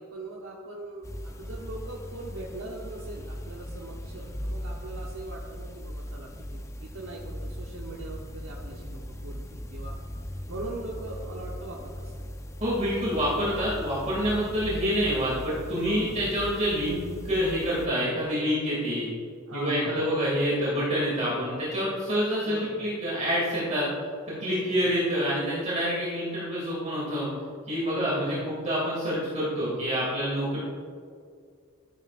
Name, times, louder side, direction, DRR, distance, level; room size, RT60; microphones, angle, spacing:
voice 1, 0.0-10.0 10.5-12.3 15.8-16.3 19.5-20.2 22.4-22.9 24.6-24.9 27.9-28.5, right 2 dB, 75° right, -2 dB, 1.0 m, -41 dB
sound 1, 1.0-17.9, equal, 15° left, 0.5 m, -39 dB
voice 2, 12.6-19.1 19.5-23.9 24.4-27.3 27.7-30.6, equal, 35° right, -7 dB, 2.3 m, -27 dB
13.0 x 9.4 x 2.5 m, 2.2 s
head